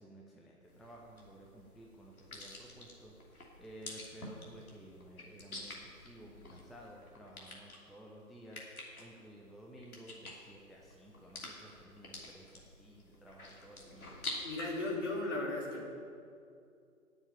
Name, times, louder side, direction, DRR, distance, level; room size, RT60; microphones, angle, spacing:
voice 1, 0.0-3.1 3.6-14.1, right 1 dB, ahead, -2 dB, 0.5 m, -54 dB
sound 1, 0.7-14.6, left 2 dB, 70° left, 3.0 m, -49 dB
voice 2, 14.4-15.9, left 2 dB, 50° left, -2 dB, 3.1 m, -36 dB
10.0 x 7.1 x 9.1 m, 2.4 s
hypercardioid pair, 180°, 45 cm